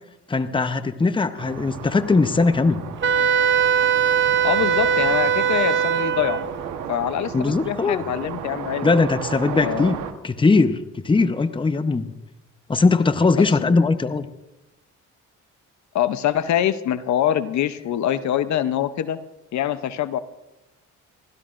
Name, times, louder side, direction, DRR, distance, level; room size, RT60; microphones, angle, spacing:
voice 1, 0.3-2.8 7.3-8.0 8.8-10.0 10.2-10.8 11.0-12.1 12.7-14.2, left 3 dB, 15° left, 11 dB, 0.8 m, -20 dB
sound 1, 1.4-10.1, right 8 dB, 85° right, 1.3 m, -34 dB
Wind instrument woodwind instrument, 3.0-6.5, right 8 dB, 40° right, 0.8 m, -20 dB
voice 2, 4.4-6.4 6.9-8.9 9.5-10.0 13.6-13.7 15.9-19.2 19.5-20.2, left 11 dB, 70° left, 13 dB, 0.8 m, -24 dB
29.0 x 12.5 x 2.5 m, 0.97 s
cardioid pair, 90°, 30 cm